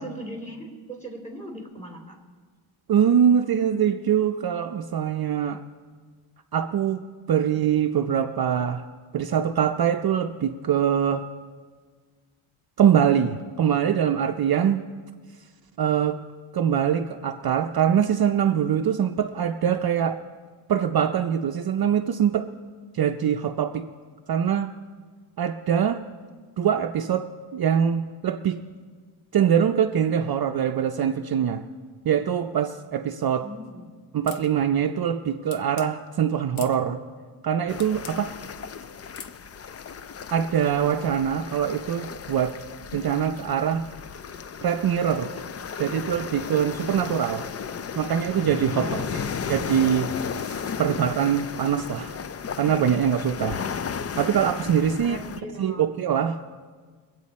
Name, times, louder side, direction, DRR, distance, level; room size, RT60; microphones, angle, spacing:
voice 1, 0.0-2.2 33.4-33.8 48.8-49.8 55.0-55.9, right 1 dB, 15° left, 1 dB, 3.0 m, -39 dB
voice 2, 2.9-5.6 6.5-8.9 9.1-11.3 12.8-14.8 15.8-16.2 16.5-20.2 20.7-22.5 22.9-23.9 24.3-24.7 25.4-26.0 26.6-28.6 29.3-31.6 32.0-33.5 34.1-37.0 37.4-38.3 40.3-42.6 42.9-43.9 44.6-45.4 45.8-47.5 48.0-49.2 49.5-52.2 52.6-53.6 54.2-55.2 55.6-56.4, right 8 dB, 50° right, 6 dB, 0.6 m, -23 dB
sound 1, 34.3-34.5 35.5-35.9 36.6-36.8 37.8-38.2 39.1-39.4, left 7 dB, 75° left, 1.0 m, -41 dB
sound 2, 37.7-55.4, left 7 dB, 30° left, 0.4 m, -34 dB
24.0 x 8.3 x 4.2 m, 1.5 s
cardioid pair, 100°, 49 cm